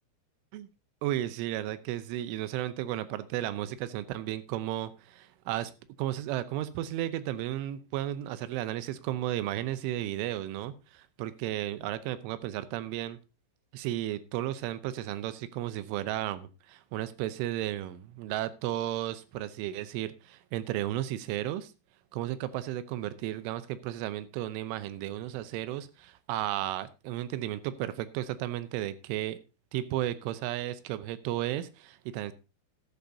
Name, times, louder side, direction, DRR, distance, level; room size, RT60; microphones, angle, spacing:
voice 1, 1.0-5.7 6.0-13.2 13.7-21.7 22.1-29.4 29.7-32.3, right 13 dB, 85° right, 13 dB, 3.3 m, -34 dB
13.0 x 11.5 x 2.7 m, 0.28 s
omnidirectional pair, 5.5 m